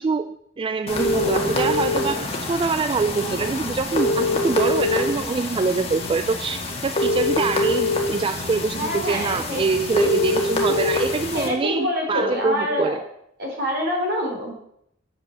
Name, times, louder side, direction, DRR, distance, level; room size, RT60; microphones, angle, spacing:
voice 1, 0.0-13.0, right 4 dB, 25° right, 11 dB, 0.3 m, -24 dB
sound 1, 0.9-11.5, left 2 dB, 30° left, 1.7 m, -25 dB
voice 2, 8.8-9.6 10.0-10.1 11.3-13.0 13.4-14.5, left 1 dB, 55° right, 0 dB, 3.5 m, -26 dB
8.4 x 6.8 x 7.0 m, 0.75 s
head